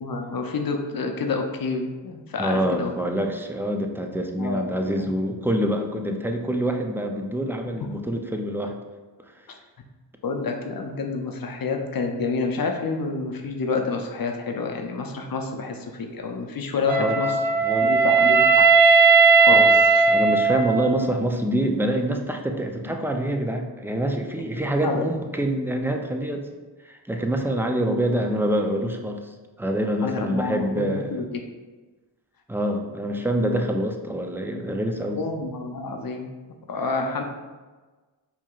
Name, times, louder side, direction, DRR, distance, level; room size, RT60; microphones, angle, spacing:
voice 1, 0.0-2.9 4.4-4.6 10.2-17.3 17.8-18.6 18.9-20.0 24.4-24.5 24.8-25.1 30.0-31.4 35.2-36.3 36.7-37.2, left 4 dB, 50° left, 3 dB, 0.6 m, -28 dB
voice 2, 2.4-8.8 16.8-17.2 17.6-18.0 19.5-19.7 20.1-26.5 26.8-29.2 29.6-31.2 32.5-35.2, right 1 dB, 5° right, 3 dB, 0.4 m, -26 dB
Wind instrument woodwind instrument, 16.9-21.1, right 4 dB, 80° right, 0.5 m, -17 dB
4.5 x 2.8 x 2.4 m, 1.3 s
cardioid pair, 50°, 44 cm